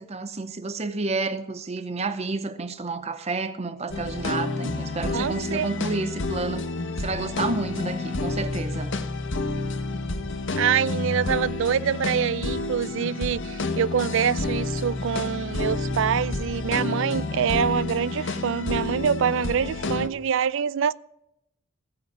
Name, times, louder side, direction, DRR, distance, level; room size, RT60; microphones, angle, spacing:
voice 1, 0.0-6.7 7.0-8.9, right 3 dB, 30° right, 0.7 m, -30 dB
sound 1, 3.9-20.1, left 3 dB, 60° left, 0.9 m, -29 dB
voice 2, 5.1-5.7 10.6-20.9, right 7 dB, 60° right, 0.4 m, -25 dB
15.5 x 5.2 x 9.2 m
head